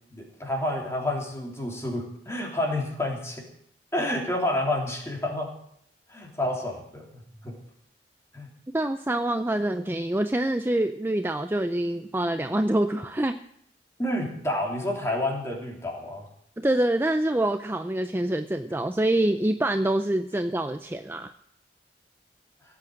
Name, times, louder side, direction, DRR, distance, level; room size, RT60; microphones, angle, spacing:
voice 1, 0.1-3.4 3.9-5.5 6.1-7.5 8.3-8.5 14.0-16.3, left 1 dB, 15° left, 0 dB, 3.2 m, -29 dB
voice 2, 8.7-13.4 16.6-21.3, right 1 dB, 10° right, 8 dB, 0.5 m, -26 dB
17.0 x 8.5 x 7.7 m, 0.71 s
head